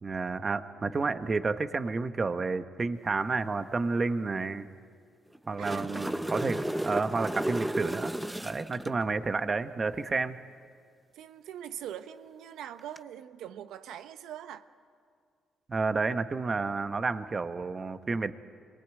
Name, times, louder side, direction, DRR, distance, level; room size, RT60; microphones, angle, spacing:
voice 1, 0.0-4.7 5.5-8.1 8.4-10.4 15.7-18.3, right 4 dB, 35° right, 11 dB, 1.1 m, -30 dB
sound 1, 5.3-9.0 12.8-13.0, right 1 dB, 5° right, 0.8 m, -33 dB
voice 2, 5.6-6.0 11.1-14.7, right 10 dB, 85° right, 10 dB, 0.8 m, -42 dB
25.5 x 20.0 x 9.2 m, 2.1 s
cardioid pair, 90°, 0 cm